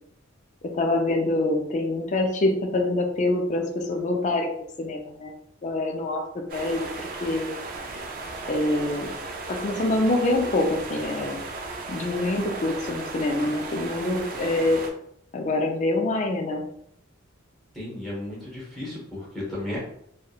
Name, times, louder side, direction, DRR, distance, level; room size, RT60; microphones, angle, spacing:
voice 1, 0.6-4.5 4.8-5.3 5.6-6.2 6.5-7.5 8.5-9.1 9.5-11.4 11.9-14.8 15.3-16.6, left 2 dB, 35° left, 3 dB, 0.4 m, -25 dB
sound 1, 6.5-14.9, right 3 dB, 45° right, 0.4 m, -36 dB
voice 2, 17.7-19.8, left 1 dB, ahead, -6 dB, 1.0 m, -34 dB
2.8 x 2.1 x 2.3 m, 0.72 s
head